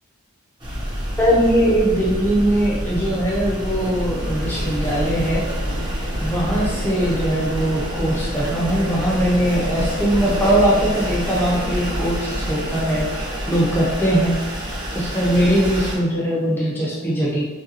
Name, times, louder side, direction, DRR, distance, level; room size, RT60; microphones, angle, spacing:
sound 1, 0.6-15.9, equal, 20° right, 0.8 m, -27 dB
voice 1, 1.2-5.4 6.2-13.1 13.5-14.4 14.9-17.4, right 1 dB, 10° left, -5 dB, 0.8 m, -20 dB
3.4 x 2.7 x 4.0 m, 1.3 s
head